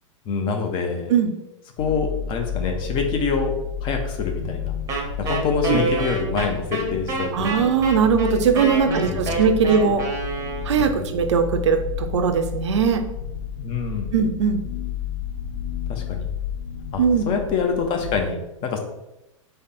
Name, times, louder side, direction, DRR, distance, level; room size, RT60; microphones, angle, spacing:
voice 1, 0.3-1.1 1.8-3.6 3.8-4.7 5.2-7.7 8.8-9.4 10.8-11.1 13.6-14.1 15.9-16.3 16.8-18.8, left 5 dB, 30° left, 4 dB, 0.6 m, -26 dB
sound 1, 1.8-18.2, left 8 dB, 60° left, 0.7 m, -32 dB
Wind instrument woodwind instrument, 4.9-11.0, right 3 dB, 20° right, 0.7 m, -28 dB
voice 2, 7.3-10.0 10.6-13.0 14.1-14.6 17.0-17.3, right 6 dB, 60° right, 6 dB, 0.5 m, -20 dB
3.2 x 2.1 x 4.1 m, 0.92 s
figure-of-eight pair, 100°, 17 cm